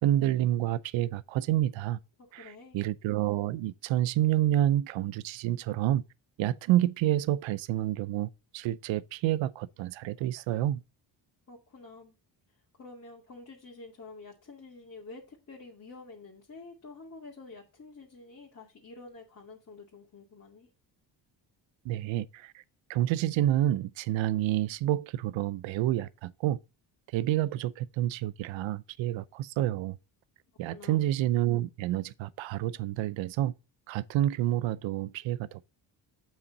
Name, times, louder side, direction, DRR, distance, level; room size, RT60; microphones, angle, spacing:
voice 1, 0.0-2.0 2.3-6.0 6.4-10.8 21.8-22.6 22.9-26.6 27.1-30.0 30.6-33.5 33.9-35.7, right 13 dB, 85° right, 0.6 m, -28 dB
voice 2, 2.2-2.8 11.5-12.2 12.8-20.7 30.7-31.0, left 3 dB, 35° left, 2.1 m, -48 dB
7.3 x 5.7 x 4.0 m
cardioid pair, 100°, 45 cm